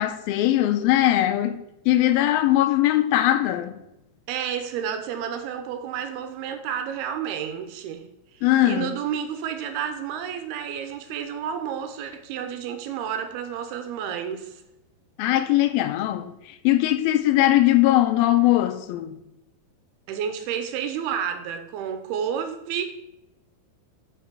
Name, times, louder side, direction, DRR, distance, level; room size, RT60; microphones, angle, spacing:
voice 1, 0.0-3.7 8.4-8.9 15.2-16.3 16.6-19.2, left 14 dB, 80° left, 2.3 m, -20 dB
voice 2, 4.3-8.1 8.3-14.6 20.1-22.8, right 8 dB, 90° right, 2.8 m, -30 dB
8.1 x 5.9 x 6.1 m
omnidirectional pair, 4.4 m